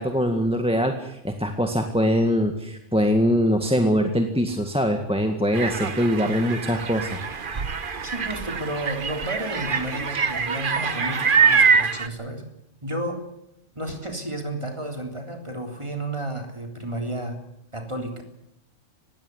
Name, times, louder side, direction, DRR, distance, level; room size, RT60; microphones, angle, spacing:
voice 1, 0.0-7.2, equal, 5° right, 5 dB, 1.8 m, -23 dB
sound 1, 5.5-12.1, right 5 dB, 45° right, 1.3 m, -24 dB
voice 2, 8.0-12.5 12.8-13.2 13.8-17.4 17.7-18.2, right 1 dB, 25° right, 4 dB, 3.7 m, -32 dB
20.0 x 16.5 x 9.8 m, 0.81 s
omnidirectional pair, 1.3 m